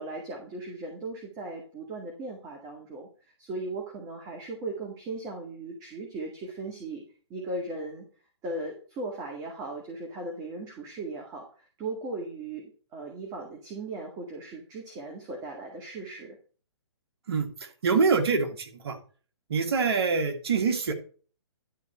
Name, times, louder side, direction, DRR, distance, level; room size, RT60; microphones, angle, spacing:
voice 1, 0.0-3.1 3.4-7.0 7.3-8.1 8.4-16.4, right 2 dB, 25° right, 1 dB, 1.8 m, -37 dB
voice 2, 17.3-19.0 19.5-20.9, right 5 dB, 60° right, 5 dB, 1.9 m, -25 dB
11.5 x 4.1 x 6.5 m, 0.40 s
figure-of-eight pair, 130°, 15 cm